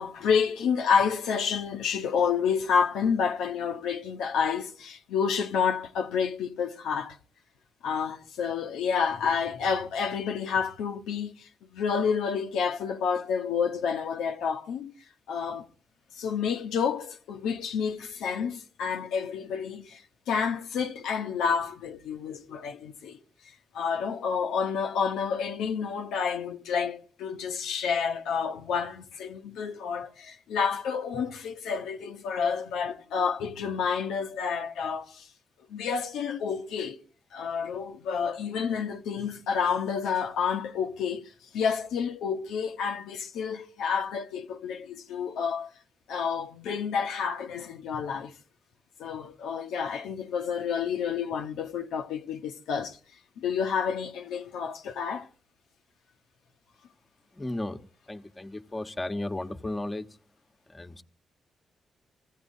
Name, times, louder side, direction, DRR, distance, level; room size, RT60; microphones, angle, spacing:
voice 1, 0.0-7.2 7.8-14.9 15.3-15.7 16.1-23.2 23.7-35.3 35.7-37.0 37.3-45.7 46.1-48.3 49.0-53.0 53.4-55.3, left 6 dB, 90° left, 0.9 m, -29 dB
voice 2, 57.3-60.1 60.7-61.0, left 1 dB, 20° left, 1.2 m, -35 dB
24.5 x 15.5 x 2.7 m
supercardioid pair, 60°, 0 cm